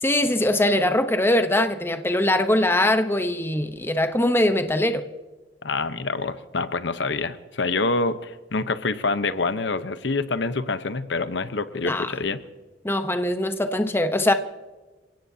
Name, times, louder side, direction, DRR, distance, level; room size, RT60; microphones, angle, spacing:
voice 1, 0.0-5.0 11.8-12.1 12.8-14.3, left 1 dB, 15° left, 0.9 m, -22 dB
voice 2, 5.6-12.4, left 3 dB, 75° left, 0.9 m, -26 dB
28.5 x 17.0 x 2.8 m
head